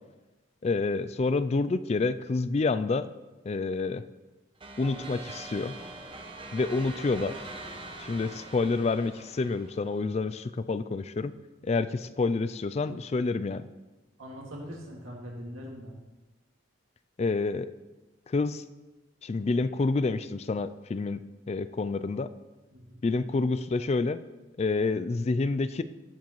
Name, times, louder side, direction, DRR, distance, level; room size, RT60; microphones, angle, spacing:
voice 1, 0.6-3.1 3.5-4.0 4.8-5.7 6.5-7.4 8.0-11.3 11.6-13.7 17.2-17.7 18.3-18.6 19.2-21.2 21.5-22.3 23.0-24.2 24.6-25.8, left 3 dB, 30° left, 13 dB, 0.3 m, -28 dB
sound 1, 4.6-10.1, right 2 dB, 25° right, 0.9 m, -43 dB
voice 2, 14.2-16.0 22.7-23.0, equal, 90° right, -2 dB, 2.2 m, -42 dB
17.5 x 7.3 x 3.1 m, 1.1 s
head